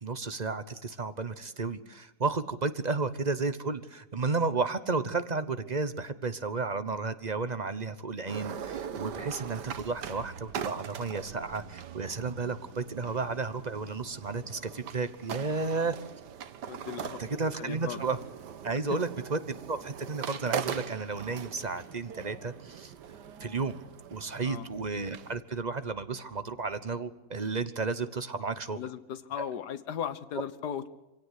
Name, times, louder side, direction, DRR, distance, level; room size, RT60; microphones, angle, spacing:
voice 1, 0.0-15.9 17.2-18.2 18.6-19.4 19.7-22.9 23.4-23.8 24.1-28.8, right 4 dB, 30° right, 12 dB, 0.9 m, -32 dB
sound 1, 8.3-25.4, right 8 dB, 85° right, 1.7 m, -41 dB
voice 2, 16.7-17.2 17.6-18.0 18.9-19.0 21.6-21.7 24.4-24.7 28.8-30.9, left 8 dB, 75° left, 13 dB, 1.7 m, -37 dB
24.5 x 17.0 x 8.2 m, 1.1 s
omnidirectional pair, 1.8 m